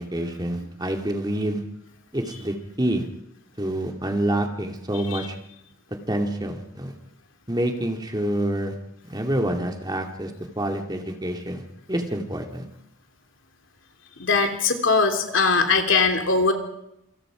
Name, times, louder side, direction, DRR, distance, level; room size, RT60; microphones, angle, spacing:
voice 1, 0.0-1.6 2.1-3.1 3.6-5.4 6.1-6.9 7.5-8.7 9.0-12.7, right 1 dB, 20° right, 3 dB, 2.4 m, -27 dB
voice 2, 14.2-16.5, left 4 dB, 65° left, 5 dB, 3.3 m, -20 dB
27.5 x 26.0 x 5.1 m, 0.85 s
head